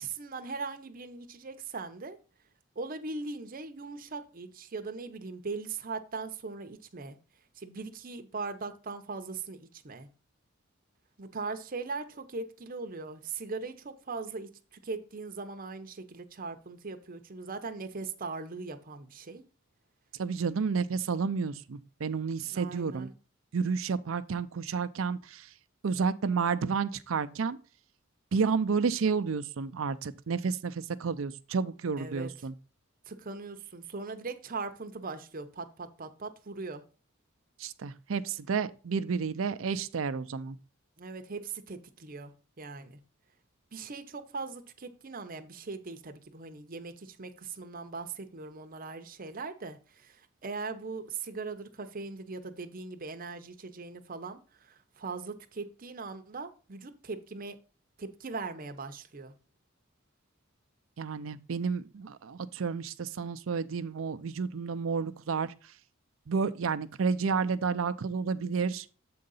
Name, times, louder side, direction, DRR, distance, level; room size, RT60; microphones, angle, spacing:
voice 1, 0.0-2.2 2.8-7.2 7.6-10.1 11.2-19.4 22.5-23.1 32.0-32.3 33.1-36.8 41.0-42.3 42.6-43.0 43.7-57.6 58.0-59.3, right 4 dB, 45° right, 0.8 m, -40 dB
voice 2, 20.2-23.1 23.5-25.5 25.8-27.6 28.3-32.5 37.6-40.6 61.0-65.5 66.3-68.9, right 5 dB, 80° right, 0.5 m, -31 dB
7.7 x 3.8 x 5.4 m
head